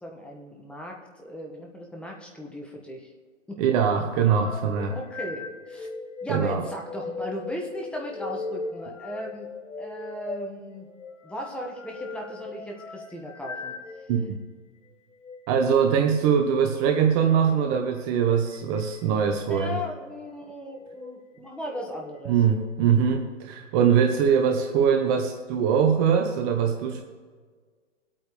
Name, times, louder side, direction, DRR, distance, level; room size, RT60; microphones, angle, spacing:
voice 1, 0.0-3.1 3.5-3.6 4.8-5.9 6.2-9.5 9.8-10.9 11.2-13.7 19.4-22.4, equal, 5° left, -1 dB, 1.6 m, -37 dB
voice 2, 3.6-5.0 6.3-6.6 14.1-14.4 15.5-19.8 22.3-27.0, right 7 dB, 30° right, 4 dB, 1.1 m, -22 dB
sound 1, 4.4-14.4 15.1-15.4 17.4-17.7 18.5-19.0 19.6-19.9 20.7-21.2 21.6-22.7, left 3 dB, 75° left, 1.2 m, -39 dB
22.5 x 8.8 x 3.3 m, 1.5 s
hypercardioid pair, 130°, 38 cm